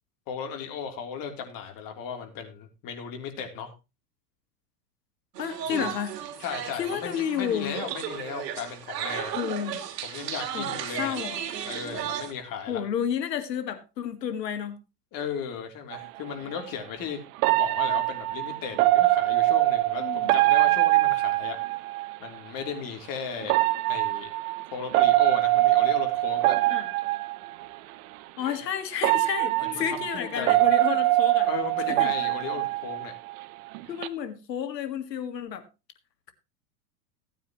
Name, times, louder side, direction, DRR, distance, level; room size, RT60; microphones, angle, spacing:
voice 1, 0.3-3.7 5.6-5.8 6.4-9.3 10.0-11.1 11.6-12.8 15.1-17.2 17.6-21.6 22.2-23.6 23.9-24.3 24.7-26.6 29.6-30.6 31.5-33.1, left 7 dB, 45° left, 4 dB, 3.3 m, -36 dB
sound 1, 5.3-12.3, right 9 dB, 80° right, 2.5 m, -35 dB
voice 2, 5.4-6.1 6.7-7.8 9.3-9.9 10.5-11.4 12.7-14.8 20.0-20.3 26.7-26.9 28.4-31.5 31.9-32.1 33.9-35.6, left 9 dB, 90° left, 8 dB, 2.0 m, -31 dB
sound 2, 15.9-16.1 17.4-22.2 23.4-27.7 28.5-28.6 29.0-33.4 33.7-34.1, right 18 dB, 60° right, 1.0 m, -23 dB
16.5 x 9.4 x 3.0 m, 0.27 s
hypercardioid pair, 115°, 48 cm